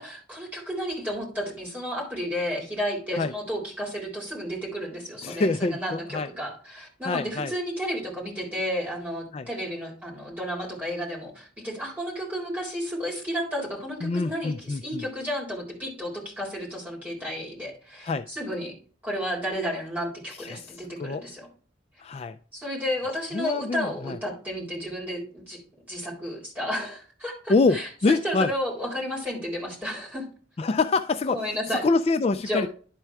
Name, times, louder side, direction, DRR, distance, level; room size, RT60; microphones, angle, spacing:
voice 1, 0.0-18.7 19.0-21.5 22.5-25.6 25.9-30.3 31.3-31.9 32.5-32.7, equal, 10° right, -4 dB, 3.9 m, -32 dB
voice 2, 5.2-6.3 7.0-7.5 9.3-9.5 14.0-15.0 18.0-18.3 20.4-21.2 22.0-22.4 23.3-24.2 27.5-28.5 30.6-32.7, left 3 dB, 35° left, 9 dB, 0.3 m, -26 dB
11.0 x 4.4 x 4.6 m, 0.40 s
head